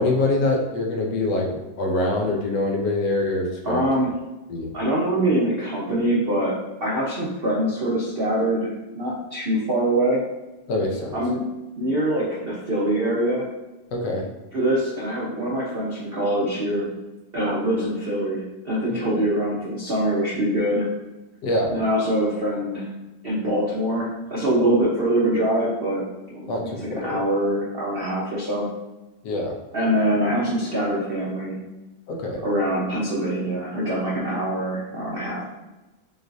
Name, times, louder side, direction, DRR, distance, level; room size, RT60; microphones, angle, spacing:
voice 1, 0.0-1.5 1.8-3.8 4.5-4.7 10.7-11.2 13.9-14.3 21.4-21.7 26.5-27.2 29.2-29.5 32.1-32.4, left 2 dB, 70° left, 0 dB, 1.2 m, -24 dB
voice 2, 3.6-4.1 4.7-6.5 6.8-10.2 11.1-11.4 11.8-13.5 14.5-16.9 17.3-20.8 21.7-22.9 23.2-26.0 26.3-28.7 29.7-31.6 32.4-35.4, right 1 dB, 75° right, -6 dB, 0.5 m, -24 dB
6.0 x 2.4 x 2.6 m, 1.0 s
omnidirectional pair, 2.1 m